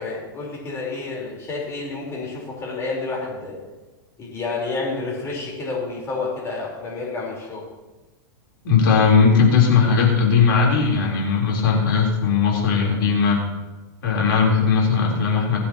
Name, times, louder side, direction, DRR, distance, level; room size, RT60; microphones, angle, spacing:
voice 1, 0.0-3.6 4.2-7.7, left 3 dB, 25° left, -2 dB, 4.1 m, -29 dB
voice 2, 8.6-13.4 14.0-15.6, left 5 dB, 75° left, -2 dB, 3.7 m, -18 dB
24.5 x 8.5 x 3.0 m, 1.2 s
supercardioid pair, 140°, 12 cm